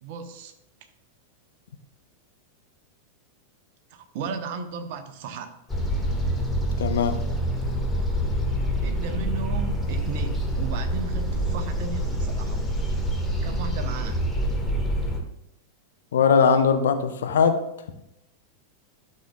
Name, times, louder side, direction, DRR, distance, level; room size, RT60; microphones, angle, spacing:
voice 1, 0.0-0.5 3.9-5.6 8.8-12.6 13.4-14.2, right 5 dB, 50° right, 7 dB, 1.1 m, -35 dB
sound 1, 5.7-15.2, equal, 10° left, 1.4 m, -26 dB
voice 2, 6.8-7.2 16.1-17.6, left 6 dB, 60° left, 7 dB, 0.8 m, -20 dB
12.5 x 6.7 x 2.4 m, 0.84 s
figure-of-eight pair, 90°, 0 cm